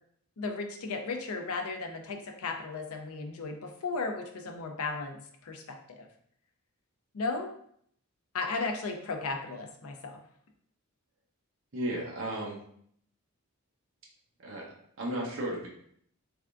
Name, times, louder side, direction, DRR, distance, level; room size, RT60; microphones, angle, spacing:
voice 1, 0.4-6.1 7.1-7.5 8.3-10.2, left 3 dB, 75° left, 4 dB, 0.5 m, -35 dB
voice 2, 11.7-12.6 14.4-14.7 15.0-15.7, right 1 dB, 60° right, -2 dB, 0.8 m, -34 dB
3.5 x 3.4 x 2.4 m, 0.67 s
head